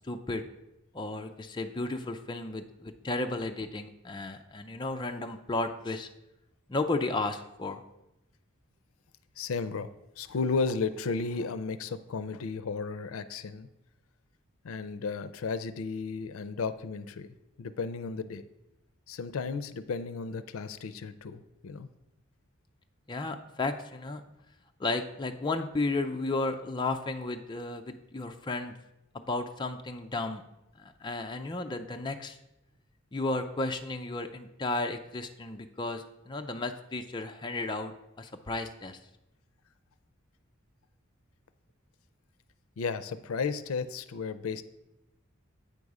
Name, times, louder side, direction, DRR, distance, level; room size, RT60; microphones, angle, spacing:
voice 1, 0.1-0.4 0.9-6.1 6.7-7.8 23.1-24.2 24.8-28.7 29.1-30.4 30.8-32.4 33.1-37.9 38.2-39.0, left 2 dB, 20° left, 5 dB, 0.4 m, -33 dB
voice 2, 9.4-13.7 14.6-17.3 17.6-18.4 19.1-21.9 42.8-44.6, left 4 dB, 80° left, 13 dB, 0.5 m, -34 dB
8.6 x 5.3 x 4.8 m, 0.90 s
head